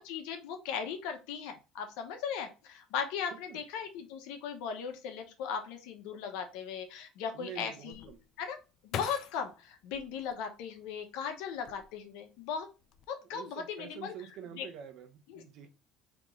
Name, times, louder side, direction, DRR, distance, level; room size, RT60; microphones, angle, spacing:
voice 1, 0.0-8.1 8.4-8.6 8.8-12.7 13.1-14.1 14.5-14.7 15.3-15.4, left 7 dB, 85° left, 6 dB, 0.9 m, -38 dB
voice 2, 3.3-3.6 7.3-8.2 13.3-15.7, right 9 dB, 60° right, 7 dB, 0.8 m, -47 dB
sound 1, 7.9-11.0 11.5-12.3 12.6-13.1, left 9 dB, 55° left, 0.4 m, -43 dB
3.6 x 3.0 x 3.6 m, 0.30 s
cardioid pair, 135°, 0 cm